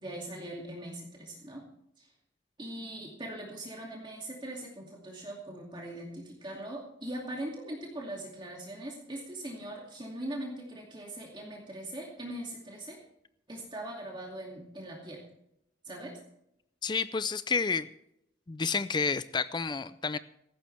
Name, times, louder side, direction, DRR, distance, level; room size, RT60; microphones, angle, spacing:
voice 1, 0.0-1.6 2.0-2.1 2.6-13.0 13.5-15.2 15.8-16.2, right 1 dB, 25° right, -2 dB, 2.5 m, -41 dB
voice 2, 16.8-17.9 18.5-20.2, left 5 dB, 25° left, 14 dB, 0.4 m, -30 dB
18.0 x 14.5 x 3.4 m, 0.79 s
head